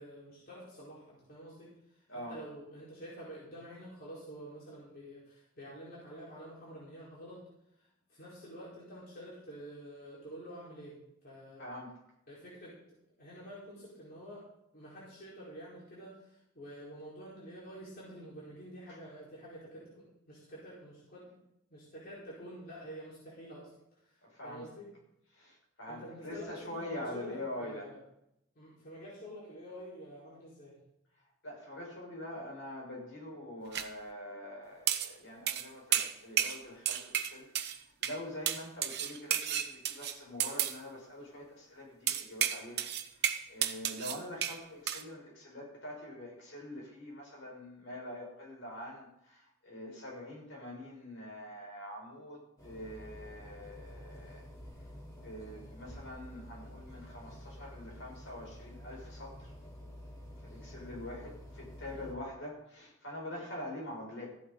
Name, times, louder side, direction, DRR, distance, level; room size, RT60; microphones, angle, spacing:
voice 1, 0.0-7.4 7.8-11.7 12.3-12.8 13.2-14.4 14.7-21.4 21.7-23.7 23.9-24.9 25.9-28.0 28.5-30.8 60.9-61.3 61.9-62.1, equal, 45° left, -7 dB, 4.5 m, -48 dB
voice 2, 11.6-12.0 18.9-19.0 24.2-24.6 25.3-27.9 31.4-42.9 43.2-54.4 55.2-59.5 60.4-64.3, left 1 dB, 65° left, -1 dB, 6.3 m, -45 dB
sound 1, 33.7-33.9 34.9-35.1 35.5-35.7 35.9-36.6 36.9-37.8 38.0-38.2 38.5-40.8 42.1-44.6 44.9-45.0, right 10 dB, 50° right, 0.9 m, -32 dB
sound 2, 52.6-62.1, equal, 15° left, 3.2 m, -49 dB
15.0 x 11.5 x 4.0 m, 0.79 s
head